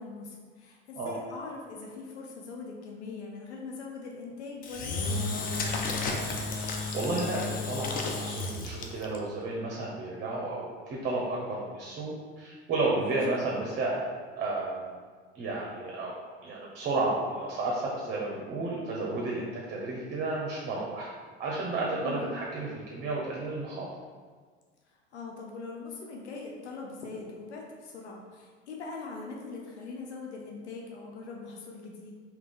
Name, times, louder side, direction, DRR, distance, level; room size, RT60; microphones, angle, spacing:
voice 1, 0.0-5.8 13.0-13.2 22.0-22.4 24.9-32.2, left 3 dB, 75° left, -1 dB, 0.6 m, -42 dB
Engine / Drill, 4.6-9.2, left 3 dB, 25° left, 0.5 m, -32 dB
voice 2, 6.5-14.1 14.3-14.9 15.3-16.1 16.4-21.1 21.4-23.9, right 2 dB, 30° right, -3 dB, 0.7 m, -32 dB
3.7 x 2.9 x 3.6 m, 1.5 s
figure-of-eight pair, 70°, 34 cm